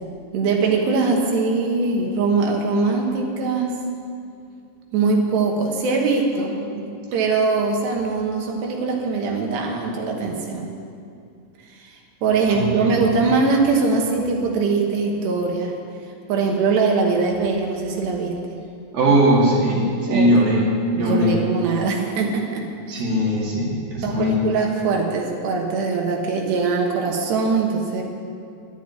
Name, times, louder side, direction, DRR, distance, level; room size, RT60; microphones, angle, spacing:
voice 1, 0.3-3.7 4.9-6.9 7.1-10.7 11.8-15.7 16.3-18.4 20.1-20.3 20.9-22.7 22.9-23.0 24.0-28.0, right 4 dB, 70° right, 1 dB, 3.3 m, -22 dB
voice 2, 12.5-13.1 18.9-20.6 21.0-21.3 22.9-24.4, equal, 55° right, -4 dB, 3.8 m, -19 dB
12.0 x 9.2 x 9.8 m, 2.5 s
omnidirectional pair, 5.4 m